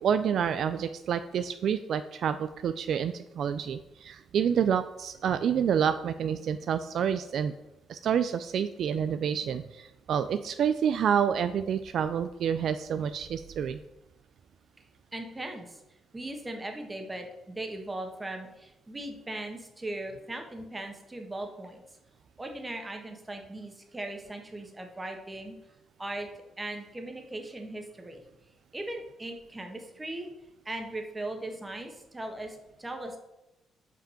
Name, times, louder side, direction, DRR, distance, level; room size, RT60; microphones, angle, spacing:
voice 1, 0.0-7.5 7.9-13.8, right 8 dB, 65° right, 11 dB, 0.3 m, -28 dB
voice 2, 15.1-15.8 16.1-21.8 22.4-25.6 26.0-26.3 26.6-28.2 28.7-30.3 30.6-33.2, right 1 dB, 20° right, 4 dB, 1.4 m, -38 dB
5.4 x 5.2 x 5.6 m, 0.91 s
cardioid pair, 90°, 0 cm